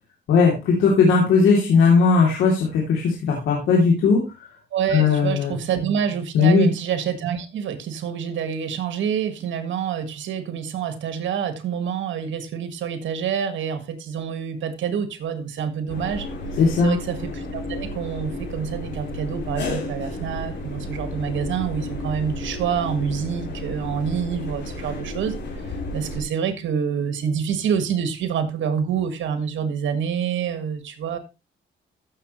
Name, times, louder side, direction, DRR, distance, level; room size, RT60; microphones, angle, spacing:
voice 1, 0.3-4.2 4.9-5.6 6.3-6.7 16.6-16.9, left 5 dB, 80° left, -2 dB, 3.1 m, -17 dB
voice 2, 4.7-16.3 16.8-25.4 25.9-31.2, right 7 dB, 70° right, 9 dB, 1.8 m, -27 dB
sound 1, 15.9-26.2, left 2 dB, 60° left, 3.7 m, -32 dB
14.5 x 6.8 x 3.2 m, 0.27 s
cardioid pair, 90°, 20 cm